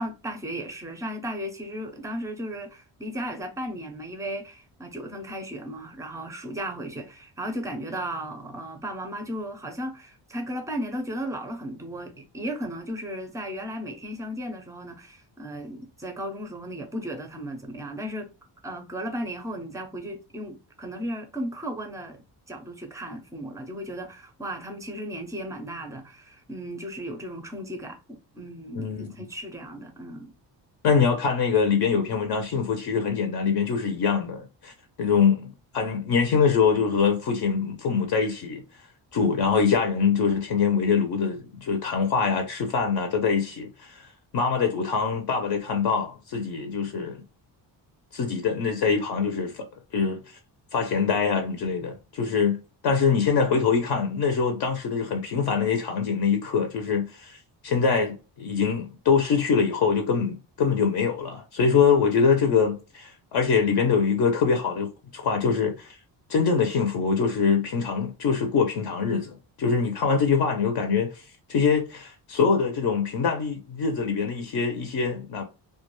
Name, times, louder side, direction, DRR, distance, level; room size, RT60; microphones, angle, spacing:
voice 1, 0.0-18.3 18.6-30.3, equal, 10° right, 0.4 m, -35 dB
voice 2, 28.7-29.1 30.8-34.7 35.0-38.6 39.1-44.1 44.3-47.2 48.1-49.7 49.9-50.4 50.7-52.6 52.8-57.4 57.6-66.0 66.3-71.2 71.5-75.4, left 5 dB, 60° left, 0.6 m, -24 dB
2.3 x 2.2 x 2.9 m
cardioid pair, 155°, 44 cm